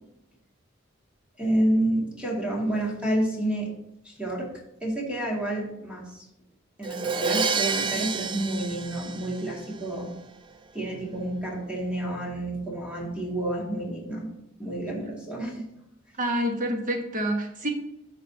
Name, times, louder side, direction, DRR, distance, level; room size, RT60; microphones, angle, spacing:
voice 1, 1.4-3.7 4.0-4.5 4.8-6.2 6.8-10.1 10.7-14.3 14.6-15.7, right 1 dB, 5° right, -4 dB, 2.3 m, -29 dB
Crash cymbal, 6.8-9.8, right 5 dB, 25° right, 0.4 m, -29 dB
voice 2, 16.2-17.7, right 1 dB, 40° right, 2 dB, 1.5 m, -27 dB
14.5 x 5.1 x 2.9 m, 0.83 s
head